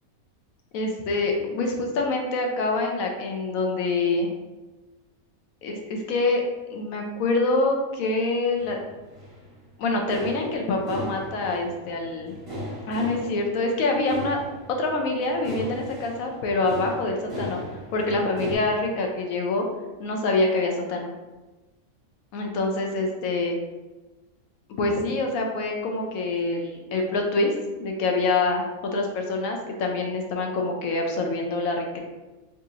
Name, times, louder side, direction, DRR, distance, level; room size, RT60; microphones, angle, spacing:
voice 1, 0.7-4.3 5.6-6.4 6.7-8.8 9.8-12.3 12.9-14.4 14.8-17.6 17.9-19.7 20.0-21.1 22.3-23.6 24.7-27.5 27.8-28.6 28.9-32.0, left 2 dB, 75° left, 2 dB, 1.0 m, -25 dB
sound 1, 8.6-18.6, left 1 dB, 30° right, 0.7 m, -38 dB
4.0 x 2.4 x 2.8 m, 1.1 s
omnidirectional pair, 1.5 m